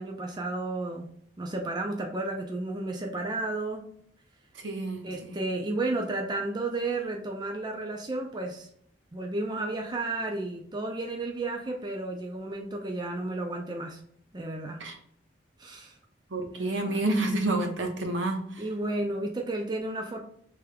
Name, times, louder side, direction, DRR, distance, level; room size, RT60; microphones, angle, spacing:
voice 1, 0.0-3.9 5.0-8.7 9.1-14.0 14.3-14.9 15.6-16.0 16.5-17.0 18.6-20.2, right 2 dB, 20° right, 2 dB, 0.4 m, -32 dB
voice 2, 4.5-5.4 14.8-15.0 16.3-18.6, right 2 dB, 80° right, 3 dB, 1.0 m, -29 dB
4.9 x 3.4 x 2.2 m, 0.65 s
head